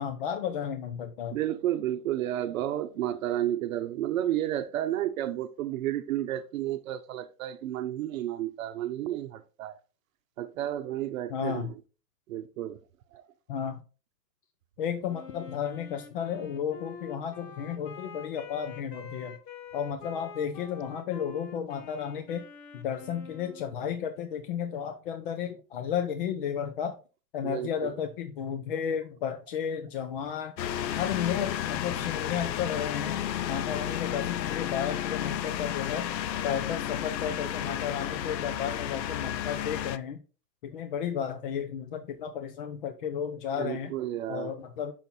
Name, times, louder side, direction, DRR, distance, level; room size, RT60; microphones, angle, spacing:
voice 1, 0.0-1.4 11.3-11.7 13.5-13.8 14.8-19.4 19.7-22.4 22.7-26.9 27.3-30.5 30.9-33.2 33.5-36.1 36.4-40.2 40.6-44.0 44.3-44.9, left 8 dB, 35° left, 0.5 m, -33 dB
voice 2, 1.3-9.8 10.4-11.7 12.3-12.8 13.1-13.2 27.4-28.0 43.5-44.5, right 12 dB, 55° right, 0.8 m, -31 dB
Wind instrument woodwind instrument, 15.1-23.9, left 6 dB, 70° left, 1.5 m, -46 dB
sound 1, 30.6-40.0, left 11 dB, 85° left, 0.7 m, -32 dB
5.8 x 5.3 x 4.3 m
hypercardioid pair, 145°, 49 cm